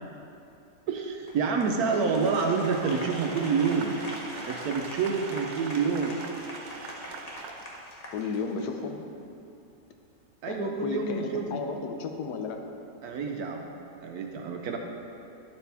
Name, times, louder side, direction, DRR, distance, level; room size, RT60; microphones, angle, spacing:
voice 1, 0.9-4.0 4.5-6.2 10.4-11.7 13.0-13.7 14.0-14.8, right 5 dB, 65° right, 2 dB, 1.1 m, -28 dB
Applause, 1.3-8.8, left 1 dB, 30° left, 0.8 m, -42 dB
sound 1, 2.0-7.9, right 5 dB, 90° right, 1.3 m, -44 dB
voice 2, 8.1-9.1 10.5-12.7, left 5 dB, 70° left, 4 dB, 1.2 m, -33 dB
10.5 x 7.1 x 3.4 m, 2.6 s
omnidirectional pair, 1.9 m